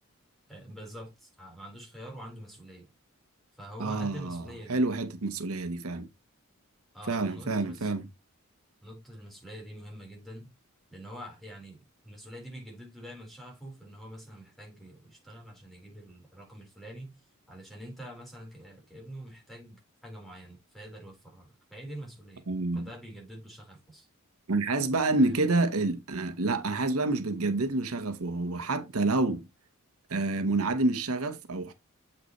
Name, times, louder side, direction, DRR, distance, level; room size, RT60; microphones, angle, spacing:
voice 1, 0.5-2.9 3.6-4.8 6.9-7.9 8.8-10.5 10.9-17.2 17.5-22.5 22.7-24.1 25.2-25.4, equal, ahead, 3.9 m, -45 dB
voice 2, 3.8-4.4 4.7-6.1 7.1-8.1 22.5-22.9 24.5-29.5 30.1-31.7, right 2 dB, 85° right, 1.2 m, -28 dB
7.9 x 5.8 x 3.1 m
head